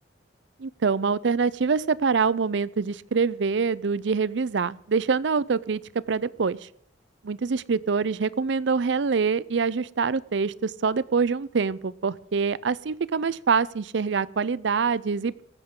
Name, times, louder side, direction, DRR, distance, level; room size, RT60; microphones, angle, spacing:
voice 1, 0.6-5.8 6.1-6.6 7.2-15.4, right 5 dB, 70° right, 20 dB, 0.5 m, -25 dB
18.5 x 14.5 x 3.8 m, 0.67 s
head